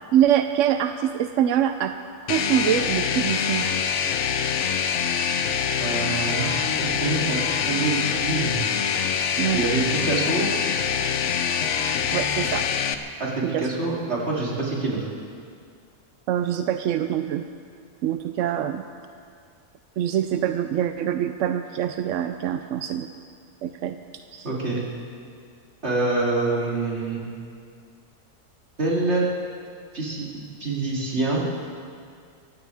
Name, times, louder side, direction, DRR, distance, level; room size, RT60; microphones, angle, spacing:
voice 1, 0.1-2.0 2.2-3.7 9.4-9.6 12.1-12.7 13.4-13.7 16.3-17.4 18.0-18.8 20.0-23.1 23.6-24.0 24.3-24.5, right 10 dB, 65° right, 8 dB, 0.8 m, -24 dB
sound 1, 2.3-12.9, left 7 dB, 60° left, 0.9 m, -25 dB
voice 2, 5.8-8.6 9.5-10.5 13.2-15.1 24.4-24.8 25.8-27.2 28.8-29.3 29.9-31.4, right 3 dB, 45° right, -5 dB, 3.3 m, -26 dB
24.0 x 15.5 x 3.5 m, 2.2 s
omnidirectional pair, 1.6 m